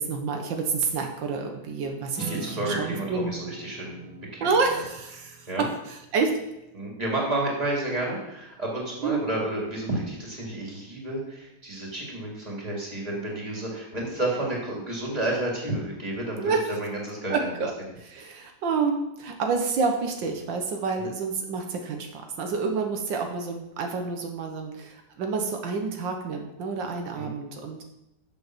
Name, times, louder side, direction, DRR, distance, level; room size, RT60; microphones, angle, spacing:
voice 1, 0.0-3.3 4.4-5.5 5.9-6.3 9.0-9.3 16.4-16.6 17.3-17.7 18.0-27.8, right 4 dB, 85° right, 3 dB, 1.8 m, -28 dB
Acoustic guitar / Strum, 2.1-7.0, right 4 dB, ahead, 2.3 m, -41 dB
voice 2, 2.3-4.5 5.2-5.6 6.7-16.5 16.8-17.3 21.0-21.1 27.1-27.3, right 1 dB, 20° right, -3 dB, 2.8 m, -31 dB
7.7 x 7.1 x 6.1 m, 0.88 s
omnidirectional pair, 2.0 m